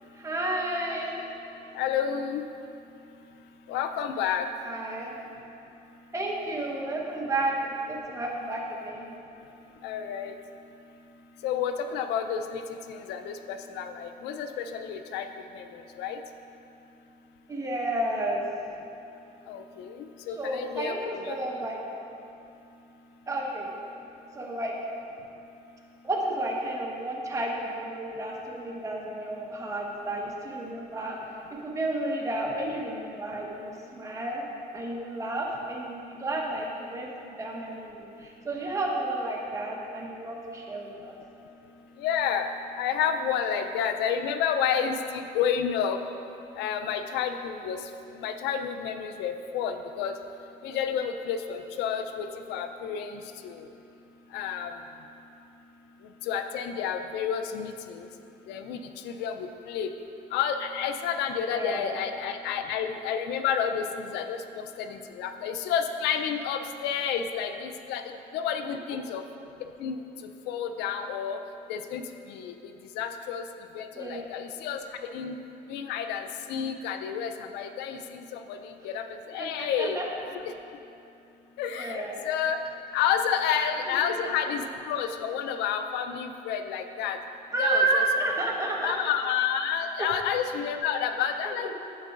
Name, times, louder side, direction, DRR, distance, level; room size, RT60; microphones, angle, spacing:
voice 1, 0.2-1.2 4.6-5.2 6.1-9.2 17.5-18.4 20.3-21.8 23.3-23.7 24.3-24.7 26.0-31.2 31.5-34.4 34.7-41.2 61.5-61.9 73.9-74.3 79.4-80.1 81.7-82.2 83.4-83.5 83.9-84.3 87.5-88.9 90.0-90.1 91.4-91.7, right 2 dB, 20° right, -2 dB, 1.1 m, -31 dB
voice 2, 1.8-2.4 3.7-4.5 9.8-10.3 11.4-12.6 12.9-15.2 15.6-15.7 16.0-16.2 19.5-19.9 20.3-21.5 42.0-42.5 42.8-46.0 46.6-47.8 48.2-50.1 50.6-53.5 54.3-54.7 56.3-58.0 58.5-58.8 59.0-59.3 59.7-59.9 60.3-64.4 64.8-68.0 68.3-69.2 69.8-69.9 70.5-71.4 71.7-72.0 72.3-72.5 73.0-73.4 73.8-74.8 75.1-75.4 75.7-78.0 78.5-78.6 78.8-80.0 81.6-82.6 82.9-87.2 87.6-88.0 88.8-91.7, left 8 dB, 85° left, 7 dB, 0.4 m, -30 dB
9.3 x 7.5 x 2.5 m, 2.7 s
cardioid pair, 110°, 17 cm